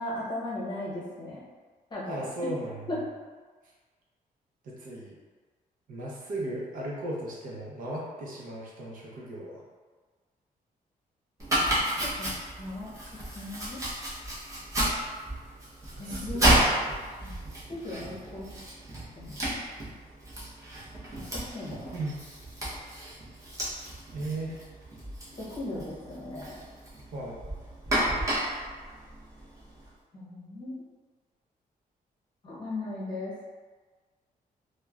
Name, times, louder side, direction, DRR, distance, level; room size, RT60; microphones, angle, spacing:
voice 1, 0.0-1.4 1.9-2.2 2.9-3.0 12.2-12.9 13.3-13.8 16.0-16.5 17.2-17.3 17.7-18.5 19.2-19.5 21.1-21.9 25.3-26.6 30.1-30.7 32.4-33.3, left 1 dB, 30° left, -8 dB, 0.8 m, -37 dB
voice 2, 2.1-3.0 4.6-5.2 5.9-9.6 12.9-13.0 15.9-17.6 21.9-22.2 24.1-24.6 27.1-27.4, right 1 dB, 65° right, -4 dB, 0.6 m, -37 dB
Domestic sounds home sounds, 11.4-29.9, right 1 dB, 20° right, 0.8 m, -32 dB
3.0 x 2.1 x 2.3 m, 1.4 s
cardioid pair, 155°, 15 cm